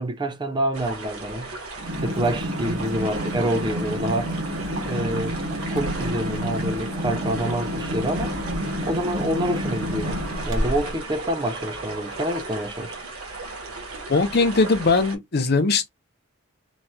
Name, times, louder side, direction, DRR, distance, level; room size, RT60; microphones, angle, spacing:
voice 1, 0.0-1.6 2.0-4.4 4.9-5.4 5.7-8.4 8.8-10.2 10.5-13.0, right 1 dB, 20° right, 0.4 m, -27 dB
sound 1, 0.7-15.2, right 3 dB, 85° right, 1.1 m, -35 dB
sound 2, 1.8-11.0, equal, 60° right, 0.9 m, -29 dB
voice 2, 14.1-15.9, left 3 dB, 45° left, 0.6 m, -20 dB
3.0 x 2.7 x 2.2 m
head